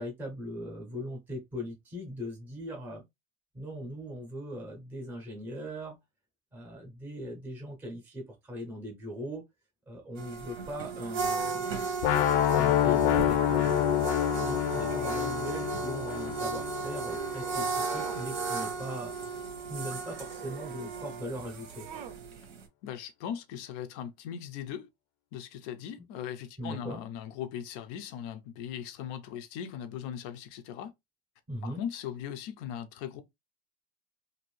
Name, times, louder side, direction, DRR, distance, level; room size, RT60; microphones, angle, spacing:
voice 1, 0.0-3.0 3.5-6.0 6.5-9.4 9.9-11.8 12.5-19.1 19.7-21.9 26.6-27.0 31.5-31.8, equal, 5° right, 0.7 m, -40 dB
sound 1, 10.2-22.6, right 5 dB, 90° right, 1.1 m, -35 dB
sound 2, 12.0-17.9, left 11 dB, 90° left, 0.5 m, -27 dB
sound 3, 13.4-15.3 15.8-16.3 16.7-18.3 18.6-19.3 19.9-22.2, right 9 dB, 70° right, 0.7 m, -46 dB
voice 2, 22.8-24.9 25.3-30.9 31.6-33.2, left 9 dB, 40° left, 0.4 m, -39 dB
2.6 x 2.5 x 3.1 m
supercardioid pair, 175°, 30 cm